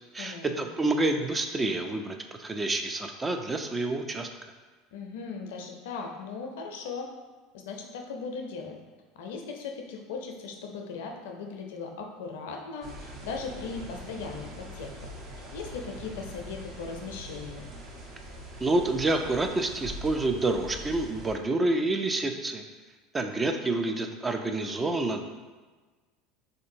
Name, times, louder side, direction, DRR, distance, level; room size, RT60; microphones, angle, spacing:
voice 1, 0.1-4.3 18.6-22.6 23.1-25.2, right 2 dB, 20° right, 5 dB, 0.3 m, -28 dB
voice 2, 4.9-7.1 7.5-8.8 9.1-15.1 15.5-17.7, left 5 dB, 75° left, 3 dB, 0.4 m, -38 dB
sound 1, 12.8-21.3, equal, 50° right, 0.8 m, -43 dB
3.5 x 2.6 x 2.6 m, 1.3 s
hypercardioid pair, 80°, 0 cm